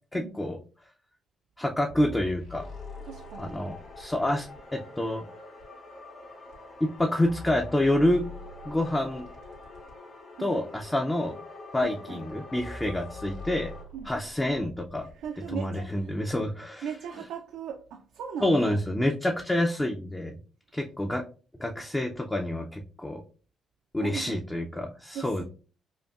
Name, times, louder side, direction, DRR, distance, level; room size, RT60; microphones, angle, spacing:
voice 1, 0.1-0.6 1.6-2.6 3.4-5.3 6.8-8.2 8.6-9.3 10.4-11.4 11.7-13.7 14.1-15.1 15.5-16.8 18.4-20.4 20.7-21.2 21.6-23.2 23.9-25.4, left 1 dB, 15° left, 0.4 m, -28 dB
sound 1, 1.9-4.6 5.6-5.7 6.5-6.6 7.0-10.0 10.8-10.9 11.8-11.9 12.3-12.4 12.6-15.3 16.3-16.4, left 2 dB, 80° left, 1.8 m, -44 dB
sound 2, 2.6-13.8, left 2 dB, 45° left, 1.7 m, -46 dB
voice 2, 3.0-3.6 10.4-10.6 11.8-12.2 13.9-14.1 15.0-16.3 16.8-18.8 24.0-24.4 25.1-25.4, right 7 dB, 85° right, 0.4 m, -39 dB
5.1 x 2.2 x 2.3 m
cardioid pair, 90°, 0 cm